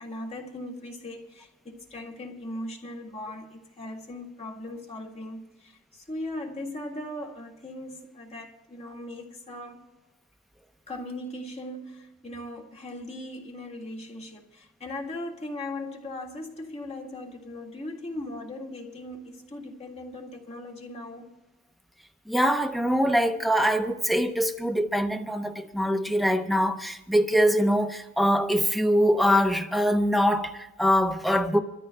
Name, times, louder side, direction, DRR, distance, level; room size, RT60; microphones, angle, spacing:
voice 1, 0.0-9.8 10.9-21.3, left 1 dB, 30° left, 1.9 m, -38 dB
voice 2, 22.3-31.6, equal, ahead, 0.7 m, -23 dB
26.5 x 13.5 x 2.3 m
head